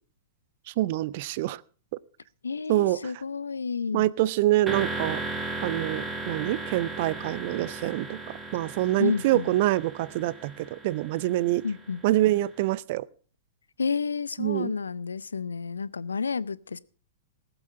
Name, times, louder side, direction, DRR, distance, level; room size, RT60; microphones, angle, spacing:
voice 1, 0.8-1.6 2.7-3.0 3.9-5.2 5.6-8.2 8.5-11.6 12.0-13.1 14.4-14.7, right 16 dB, 45° right, 0.5 m, -25 dB
voice 2, 2.4-4.1 9.0-9.5 11.6-12.0 13.8-16.8, left 5 dB, 75° left, 0.6 m, -30 dB
sound 1, 4.7-12.4, right 2 dB, 15° right, 2.1 m, -36 dB
18.5 x 8.0 x 5.4 m
figure-of-eight pair, 105°, 0 cm